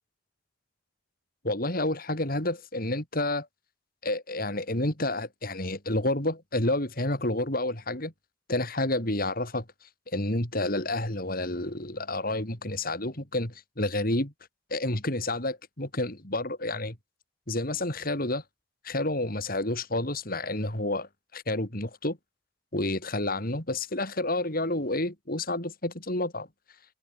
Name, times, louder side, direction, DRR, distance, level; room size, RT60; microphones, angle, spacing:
voice 1, 1.4-3.5 4.0-8.1 8.5-9.6 10.1-14.3 14.7-17.0 17.5-18.4 18.8-22.2 22.7-26.5, left 2 dB, 45° left, 4.1 m, -29 dB
head